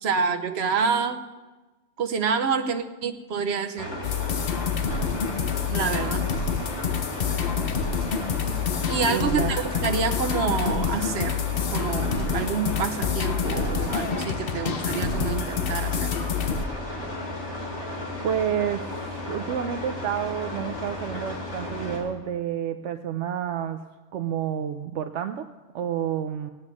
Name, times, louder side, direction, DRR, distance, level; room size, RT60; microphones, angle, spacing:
voice 1, 0.0-1.2 2.0-3.9 5.7-6.3 8.5-8.6 8.9-11.4 11.7-16.1, right 5 dB, 65° right, 6 dB, 1.2 m, -27 dB
sound 1, 3.8-22.0, left 1 dB, 75° left, 3.8 m, -34 dB
sound 2, 4.0-16.7, left 7 dB, 55° left, 0.9 m, -27 dB
voice 2, 9.1-9.6 18.2-18.9 19.2-23.8 24.1-25.5 25.7-26.5, right 9 dB, 80° right, 7 dB, 0.9 m, -29 dB
18.5 x 8.8 x 6.1 m, 1.2 s
omnidirectional pair, 1.2 m